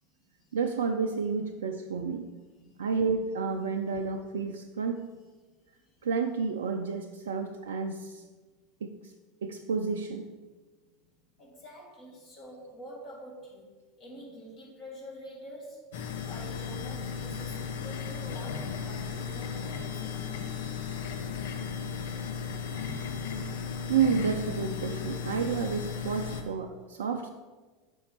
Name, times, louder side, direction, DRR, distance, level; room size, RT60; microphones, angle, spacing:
voice 1, 0.5-2.3 2.8-5.0 6.0-8.2 8.8-9.1 9.4-10.3 23.9-27.3, right 5 dB, 75° right, 4 dB, 0.4 m, -30 dB
voice 2, 11.4-13.7 14.0-15.9 16.3-20.5, equal, 50° left, -3 dB, 1.8 m, -47 dB
sound 1, 15.9-26.4, left 6 dB, 65° left, 0.7 m, -35 dB
6.3 x 5.3 x 4.4 m, 1.3 s
figure-of-eight pair, 80°, 0 cm